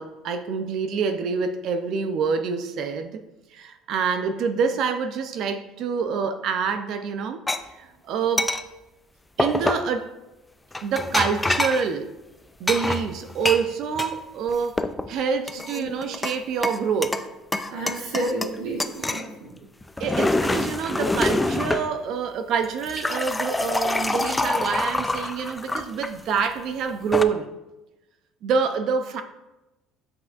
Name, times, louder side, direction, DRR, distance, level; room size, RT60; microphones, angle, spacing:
voice 1, 0.0-3.2 3.5-7.4 7.7-8.5 9.4-10.1 10.8-12.1 12.6-14.8 15.1-17.2 20.0-27.5 28.4-29.2, right 6 dB, 55° right, 0.5 m, -26 dB
sound 1, 7.5-7.6 8.4-8.6 9.4-9.9 10.7-11.9 12.7-14.1 14.5-15.1 15.5-16.4 16.6-17.3 17.5-18.5 18.8-19.3 19.8-21.9 22.6-26.1 26.9-27.2, left 2 dB, 10° left, 0.3 m, -25 dB
voice 2, 17.7-19.5, right 2 dB, 85° right, 2.1 m, -30 dB
7.6 x 6.0 x 2.5 m
cardioid pair, 135°, 0 cm